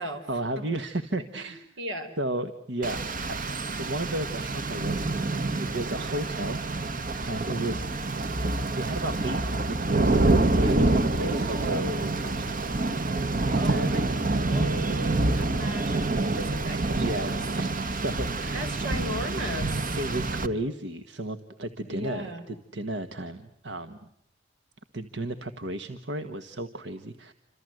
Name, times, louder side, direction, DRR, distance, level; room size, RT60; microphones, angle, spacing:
voice 1, 0.3-1.6 2.2-3.0 3.3-3.4 3.8-5.2 5.5-6.6 7.2-7.9 8.7-10.2 10.5-12.7 13.6-14.0 16.9-18.7 19.9-24.1 24.9-27.3, right 1 dB, 65° right, 9 dB, 1.5 m, -33 dB
voice 2, 1.3-2.1 11.2-12.2 13.5-17.4 18.5-20.0 21.9-22.5, equal, 85° right, 7 dB, 5.3 m, -36 dB
Rain, 2.8-20.5, right 2 dB, 50° right, 1.4 m, -27 dB
28.5 x 26.5 x 7.9 m, 0.72 s
head